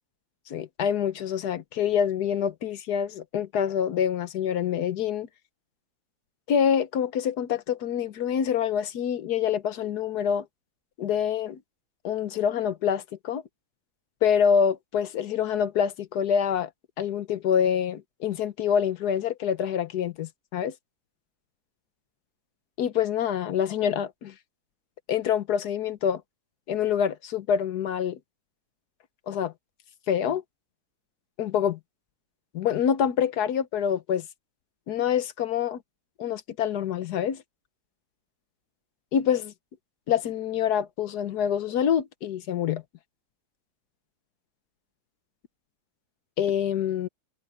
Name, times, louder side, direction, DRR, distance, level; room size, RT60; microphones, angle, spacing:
voice 1, 0.5-5.3 6.5-10.5 11.0-11.6 12.0-13.4 14.2-16.7 17.0-20.7 22.8-24.3 25.1-26.2 26.7-28.2 29.3-29.5 30.1-30.4 31.4-31.8 32.5-34.2 34.9-35.8 36.2-37.4 39.1-39.5 40.1-42.8 46.4-47.1, left 8 dB, 80° left, 1.5 m, -26 dB
omnidirectional pair, 1.7 m